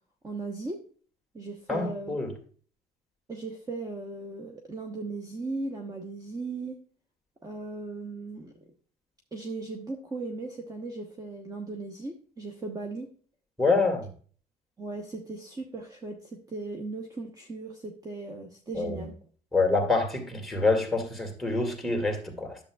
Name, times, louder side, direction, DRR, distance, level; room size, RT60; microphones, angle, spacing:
voice 1, 0.2-0.8 1.3-2.2 3.3-6.8 7.4-8.5 9.3-13.1 14.8-19.2, right 3 dB, 20° right, 2 dB, 1.1 m, -37 dB
voice 2, 1.7-2.3 13.6-14.1 18.7-19.0 19.5-22.6, left 3 dB, ahead, 2 dB, 2.3 m, -26 dB
10.5 x 7.4 x 2.3 m, 0.43 s
cardioid pair, 110°, 17 cm